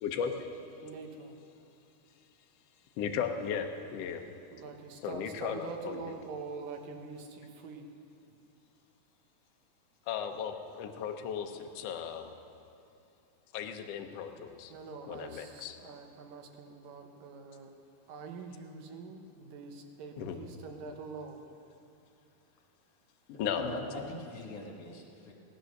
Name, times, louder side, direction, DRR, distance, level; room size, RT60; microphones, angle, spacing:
voice 1, 0.0-0.5 3.0-4.2 5.0-6.0 10.1-12.3 13.5-14.7 15.1-15.7 20.2-20.4 23.4-23.8, left 7 dB, 70° left, 4 dB, 1.6 m, -36 dB
voice 2, 0.8-1.4 4.5-7.9 14.7-17.7 18.1-21.5, right 4 dB, 85° right, 4 dB, 2.8 m, -45 dB
voice 3, 23.3-25.3, left 2 dB, 55° left, -1 dB, 2.7 m, -42 dB
18.0 x 10.0 x 6.5 m, 2.6 s
omnidirectional pair, 3.8 m